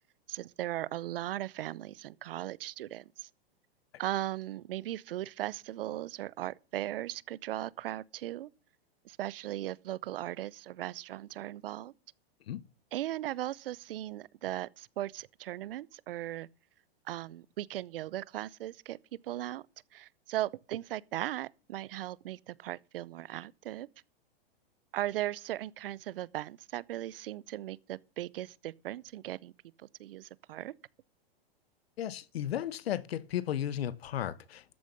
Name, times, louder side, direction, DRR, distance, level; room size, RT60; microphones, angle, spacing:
voice 1, 0.3-3.3 4.0-8.5 9.0-11.9 12.9-16.5 17.1-19.0 19.2-19.6 19.9-23.9 24.9-29.5 30.0-30.7, right 14 dB, 65° right, 0.7 m, -38 dB
voice 2, 32.0-34.6, left 11 dB, 75° left, 1.0 m, -34 dB
13.0 x 6.9 x 6.7 m
hypercardioid pair, 145°, 31 cm